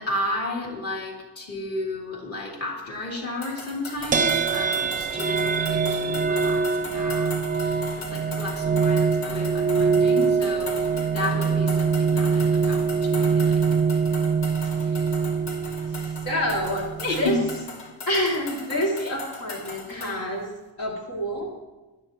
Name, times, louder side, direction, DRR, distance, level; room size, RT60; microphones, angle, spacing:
voice 1, 0.0-10.7 11.1-13.6 17.0-17.3 19.0-19.1, left 2 dB, 35° left, -2 dB, 3.0 m, -33 dB
sound 1, 3.4-20.2, left 3 dB, 75° left, 2.4 m, -39 dB
sound 2, 4.1-17.6, right 5 dB, 20° right, 0.7 m, -24 dB
voice 2, 10.9-11.5 14.6-15.0 15.9-17.4 18.1-20.5 20.8-21.5, equal, 60° left, -2 dB, 2.5 m, -28 dB
19.5 x 12.0 x 2.9 m, 1.1 s
cardioid pair, 165°, 40 cm